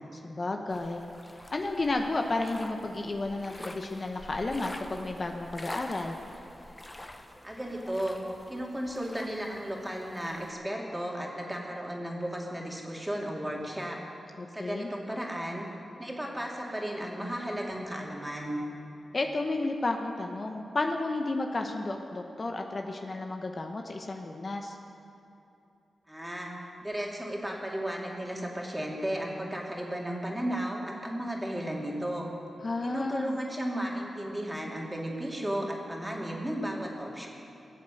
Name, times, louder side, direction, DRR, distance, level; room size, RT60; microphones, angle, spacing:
voice 1, 0.1-1.0 1.5-6.2 14.4-14.9 19.1-24.8 32.6-33.4, left 2 dB, 45° left, 3 dB, 1.0 m, -32 dB
sound 1, 0.7-10.5, left 1 dB, 20° left, 1.2 m, -46 dB
voice 2, 7.4-8.2 8.5-14.0 14.5-15.7 16.0-18.6 26.1-32.3 32.8-37.3, right 1 dB, 15° right, -1 dB, 2.8 m, -34 dB
18.0 x 7.4 x 7.8 m, 2.8 s
cardioid pair, 50°, 0 cm